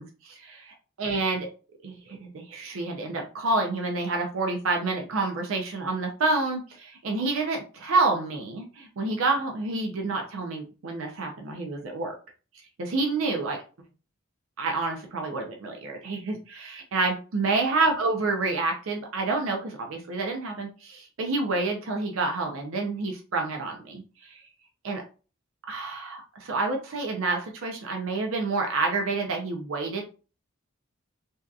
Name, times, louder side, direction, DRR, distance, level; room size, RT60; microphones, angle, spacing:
voice 1, 0.0-1.5 1.8-12.1 12.8-13.6 14.6-24.4 24.8-25.0 25.7-30.0, right 3 dB, 80° right, 2 dB, 0.5 m, -28 dB
2.6 x 2.3 x 2.3 m, 0.35 s
head